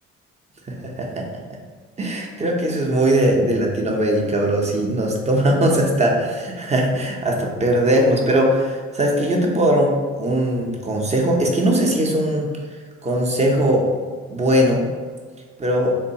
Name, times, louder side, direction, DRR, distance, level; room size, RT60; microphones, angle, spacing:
voice 1, 2.0-12.5 13.0-13.8 14.3-14.8 15.6-15.9, right 1 dB, 25° right, 0 dB, 0.5 m, -20 dB
3.0 x 2.1 x 2.7 m, 1.5 s
cardioid pair, 90°, 30 cm